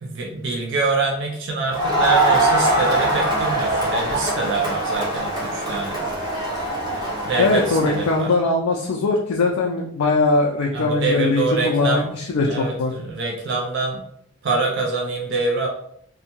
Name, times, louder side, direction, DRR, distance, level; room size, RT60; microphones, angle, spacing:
voice 1, 0.0-6.0 7.3-8.3 10.7-12.1 12.4-14.0 14.4-15.7, right 3 dB, 55° right, -1 dB, 0.4 m, -25 dB
Crowd, 1.7-8.3, right 2 dB, 20° right, 0.7 m, -22 dB
voice 2, 7.4-12.9, left 3 dB, 85° left, 0 dB, 0.4 m, -21 dB
2.6 x 2.1 x 2.9 m, 0.68 s
head